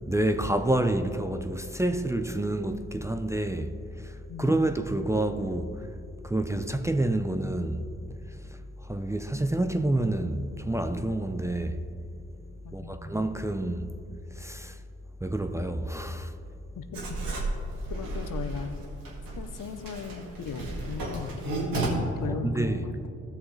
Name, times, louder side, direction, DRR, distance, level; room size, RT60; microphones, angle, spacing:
voice 1, 0.1-5.9 6.2-7.8 8.8-11.8 12.7-13.9 14.4-14.8 15.2-16.3 22.2-22.8, right 1 dB, 10° right, 0.5 m, -28 dB
voice 2, 4.3-4.8 12.6-13.1 16.7-17.1 17.9-18.8 19.3-21.8 22.2-22.9, left 6 dB, 70° left, 0.8 m, -38 dB
Writing, 16.9-21.9, right 2 dB, 85° right, 2.0 m, -33 dB
15.0 x 6.5 x 3.2 m
cardioid pair, 70°, 33 cm